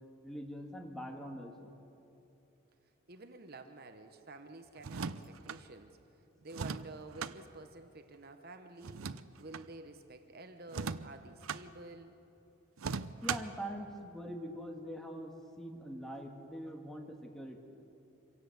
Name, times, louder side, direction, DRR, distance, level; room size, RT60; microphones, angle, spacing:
voice 1, 0.2-1.7 13.2-17.6, equal, ahead, 2 dB, 1.8 m, -43 dB
voice 2, 3.1-6.0 6.4-12.1, right 2 dB, 45° right, 7 dB, 1.0 m, -50 dB
sound 1, 4.8-5.6 6.5-7.4 8.8-9.7 10.7-11.6 12.8-13.6, right 5 dB, 90° right, 0.7 m, -39 dB
25.5 x 17.0 x 8.0 m, 2.9 s
head